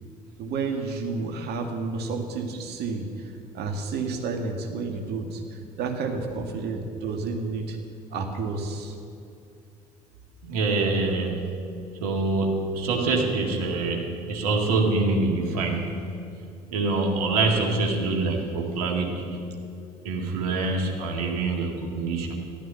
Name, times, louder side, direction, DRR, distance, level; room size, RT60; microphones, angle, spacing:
voice 1, 0.4-7.8 8.1-8.9, right 4 dB, 60° right, 4 dB, 2.1 m, -31 dB
voice 2, 10.4-11.7 12.0-16.1 16.7-19.4 20.0-22.3, right 3 dB, 75° right, 1 dB, 2.0 m, -25 dB
14.0 x 12.0 x 7.1 m, 2.6 s
figure-of-eight pair, 55°, 19 cm